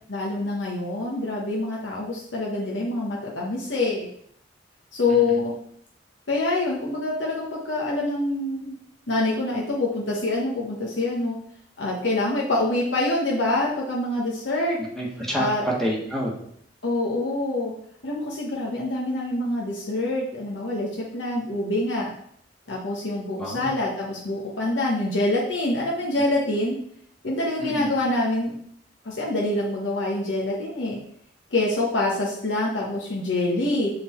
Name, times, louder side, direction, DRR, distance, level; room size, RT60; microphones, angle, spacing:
voice 1, 0.1-4.1 4.9-5.5 6.3-8.8 9.1-11.4 11.8-14.8 15.3-15.6 16.8-17.7 18.0-22.1 22.7-26.8 27.2-28.6 29.0-31.0 31.5-33.9, left 2 dB, 80° left, -4 dB, 1.2 m, -25 dB
voice 2, 5.1-5.4 14.8-15.5 15.8-16.3 23.4-23.7 27.6-27.9, equal, ahead, -4 dB, 1.4 m, -29 dB
6.6 x 3.9 x 4.4 m, 0.67 s
head